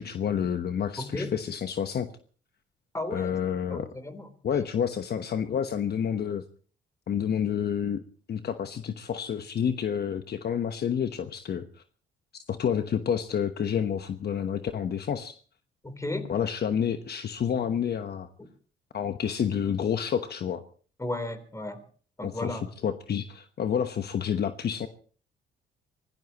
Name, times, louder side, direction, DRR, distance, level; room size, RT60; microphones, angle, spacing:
voice 1, 0.0-2.1 3.1-3.9 4.4-6.4 7.1-8.0 8.3-11.8 12.5-15.4 16.3-18.3 18.9-20.6 22.2-24.9, left 8 dB, 55° left, 8 dB, 1.1 m, -29 dB
voice 2, 1.0-1.3 2.9-3.4 3.7-4.3 15.8-16.3 21.0-21.8 22.2-22.6, left 2 dB, 15° left, 10 dB, 3.6 m, -34 dB
25.0 x 18.0 x 3.0 m, 0.44 s
cardioid pair, 90°, 20 cm